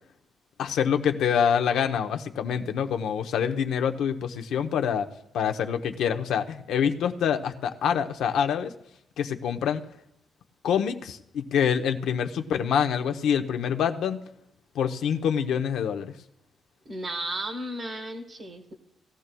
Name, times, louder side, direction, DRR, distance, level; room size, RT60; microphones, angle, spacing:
voice 1, 0.6-5.1 5.3-8.7 9.2-9.8 10.6-14.2 14.7-16.1, left 8 dB, 85° left, 7 dB, 0.7 m, -26 dB
voice 2, 16.8-18.7, right 1 dB, 40° right, 3 dB, 1.1 m, -34 dB
18.5 x 13.5 x 2.2 m, 0.78 s
cardioid pair, 150°, 0 cm